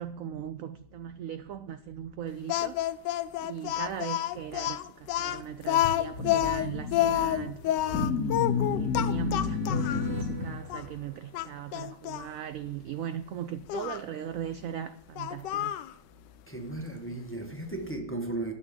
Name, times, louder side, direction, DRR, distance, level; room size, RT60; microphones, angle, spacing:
voice 1, 0.0-2.8 3.4-8.2 8.7-15.8, right 10 dB, 70° right, 0.8 m, -39 dB
Speech, 2.5-10.1 10.7-10.8 11.3-12.3 13.7-14.0 15.2-15.9, left 13 dB, 85° left, 1.2 m, -29 dB
sound 1, 5.8-10.9, left 5 dB, 60° left, 1.5 m, -31 dB
sound 2, 6.4-11.9, right 2 dB, 40° right, 2.1 m, -48 dB
voice 2, 16.5-18.5, right 2 dB, 10° left, 1.1 m, -35 dB
11.5 x 6.8 x 7.5 m
omnidirectional pair, 1.8 m